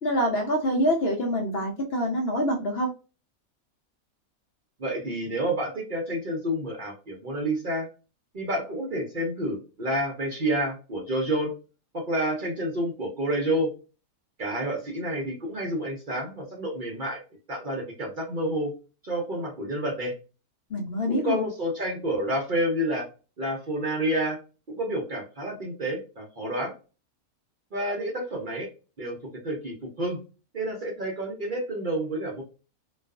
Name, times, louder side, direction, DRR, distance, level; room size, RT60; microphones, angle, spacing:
voice 1, 0.0-2.9 20.7-21.4, equal, 60° left, 1 dB, 0.7 m, -25 dB
voice 2, 4.8-7.9 8.3-11.5 11.9-13.7 14.4-17.2 17.5-18.7 19.0-20.1 21.1-23.0 23.4-24.4 24.7-26.7 27.7-28.7 29.0-29.2 29.4-30.2 30.5-32.4, right 1 dB, 45° right, -1 dB, 0.7 m, -29 dB
2.4 x 2.3 x 2.3 m, 0.33 s
omnidirectional pair, 1.5 m